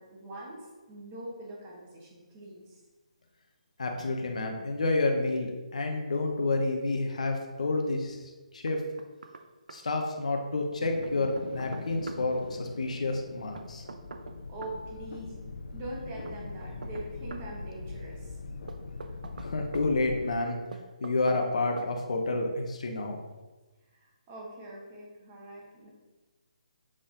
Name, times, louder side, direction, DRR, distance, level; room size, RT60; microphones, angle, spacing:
voice 1, 0.0-2.8 14.5-18.4 23.9-25.9, right 1 dB, 15° right, -3 dB, 1.0 m, -43 dB
voice 2, 3.8-8.8 9.7-13.8 19.4-20.6 21.0-23.2, left 2 dB, 60° left, 2 dB, 0.9 m, -29 dB
Knock, 8.7-9.4 9.7-9.8 11.0-12.2 13.6-14.8 16.3-17.5 18.7-19.9 20.7-21.5 21.8-21.9, right 3 dB, 85° right, 0.7 m, -44 dB
sound 1, 10.8-20.3, left 3 dB, 80° left, 0.6 m, -42 dB
7.6 x 4.3 x 3.8 m, 1.2 s
hypercardioid pair, 180°, 4 cm